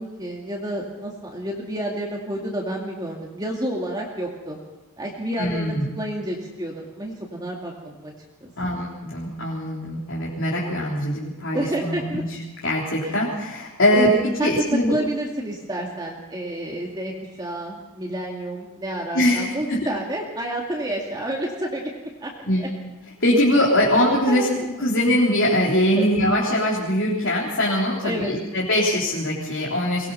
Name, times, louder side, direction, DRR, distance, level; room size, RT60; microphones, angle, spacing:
voice 1, 0.0-4.6 5.0-8.1 8.4-8.5 11.5-12.2 13.0-13.1 13.9-17.1 17.4-22.7 24.3-24.7 26.0-26.1 28.0-28.3, right 1 dB, 20° right, -2 dB, 2.3 m, -29 dB
voice 2, 5.4-5.9 8.6-12.4 12.6-15.0 19.1-19.9 22.5-22.7 23.2-30.1, left 1 dB, 55° left, -5 dB, 3.9 m, -22 dB
23.0 x 20.0 x 5.7 m, 1.1 s
head